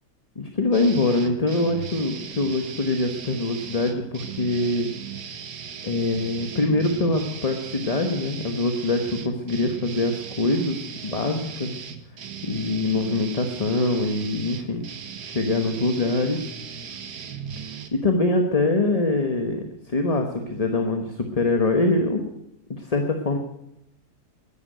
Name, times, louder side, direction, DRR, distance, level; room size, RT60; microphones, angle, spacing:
voice 1, 0.4-4.9 5.8-10.8 11.0-11.8 12.5-14.8 15.2-16.4 17.9-22.2 22.7-23.4, left 2 dB, 25° left, 4 dB, 1.1 m, -24 dB
sound 1, 0.7-17.9, right 7 dB, 75° right, 1.7 m, -38 dB
13.0 x 10.5 x 9.2 m, 0.80 s
omnidirectional pair, 1.7 m